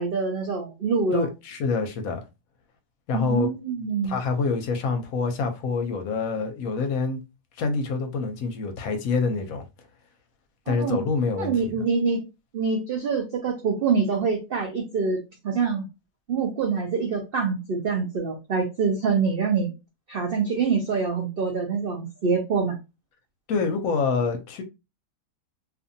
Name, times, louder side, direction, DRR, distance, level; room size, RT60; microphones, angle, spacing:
voice 1, 0.0-1.3 3.1-4.2 10.7-11.0 11.4-12.2 12.5-15.9 16.3-19.7 20.1-22.8, right 5 dB, 80° right, 0.5 m, -25 dB
voice 2, 1.1-2.2 3.1-3.5 4.0-7.2 7.6-9.7 10.7-11.7 23.5-24.6, left 4 dB, 70° left, 0.9 m, -26 dB
2.6 x 2.5 x 2.6 m
omnidirectional pair, 1.7 m